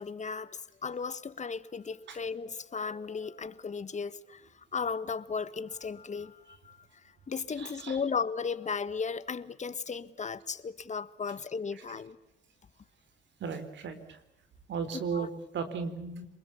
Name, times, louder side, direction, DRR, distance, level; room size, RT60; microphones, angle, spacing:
voice 1, 0.0-4.4 4.7-6.8 7.3-12.2 14.9-15.3, left 5 dB, 35° left, 1.6 m, -35 dB
voice 2, 7.6-8.0 13.4-14.2 14.7-16.3, right 5 dB, 65° right, 4.3 m, -36 dB
28.5 x 21.0 x 7.2 m
cardioid pair, 90°, 20 cm